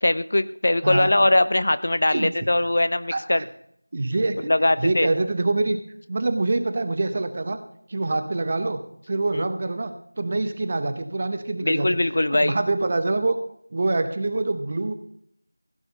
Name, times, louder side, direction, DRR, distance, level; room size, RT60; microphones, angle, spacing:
voice 1, 0.0-3.4 4.5-5.1 9.3-9.4 11.6-12.6, left 1 dB, 40° left, 14 dB, 0.4 m, -21 dB
voice 2, 2.1-2.5 3.1-3.4 3.9-4.5 4.8-5.8 6.1-7.6 7.9-8.8 9.1-11.9 12.4-13.4 13.7-14.9, right 2 dB, 20° right, 9 dB, 0.8 m, -25 dB
16.0 x 8.4 x 5.3 m, 0.70 s
figure-of-eight pair, 175°, 0 cm